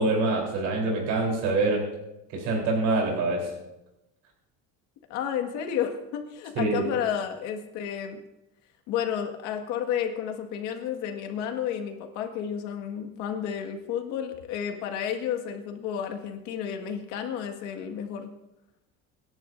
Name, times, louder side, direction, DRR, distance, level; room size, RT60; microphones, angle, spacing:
voice 1, 0.0-1.9 2.3-3.5 6.6-6.8, right 2 dB, 60° right, -1 dB, 3.8 m, -25 dB
voice 2, 5.1-8.2 8.9-18.3, left 8 dB, 65° left, 4 dB, 1.8 m, -31 dB
25.5 x 11.0 x 2.6 m, 0.96 s
cardioid pair, 175°, 31 cm